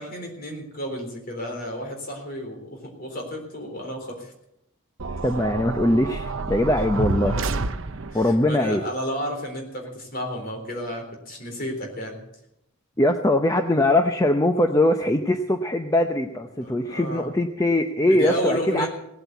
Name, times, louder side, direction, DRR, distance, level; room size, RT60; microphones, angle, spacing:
voice 1, 0.0-4.3 8.1-12.2 16.6-17.3 18.1-18.9, equal, 45° left, 2 dB, 3.9 m, -32 dB
sound 1, 5.0-8.3, right 3 dB, 65° right, 0.8 m, -29 dB
voice 2, 5.2-7.4 8.1-8.8 13.0-18.9, left 1 dB, 15° left, 6 dB, 0.7 m, -21 dB
18.0 x 8.5 x 8.1 m, 0.84 s
head